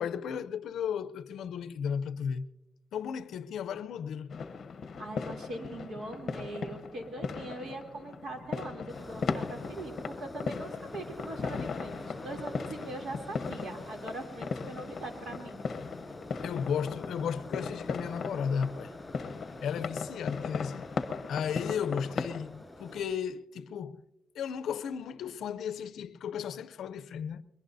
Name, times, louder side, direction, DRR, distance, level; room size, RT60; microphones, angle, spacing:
voice 1, 0.0-2.5 2.9-4.4 16.4-18.9 19.6-20.9 21.3-24.0 24.3-27.4, left 7 dB, 75° left, 0.5 m, -34 dB
sound 1, 4.3-22.4, left 5 dB, 45° left, 0.8 m, -38 dB
voice 2, 5.0-9.9 10.2-15.6, right 2 dB, 60° right, 3.0 m, -41 dB
sound 2, 8.9-23.0, left 1 dB, 10° left, 6.6 m, -47 dB
22.5 x 21.5 x 2.7 m
wide cardioid pair, 155°, 0 cm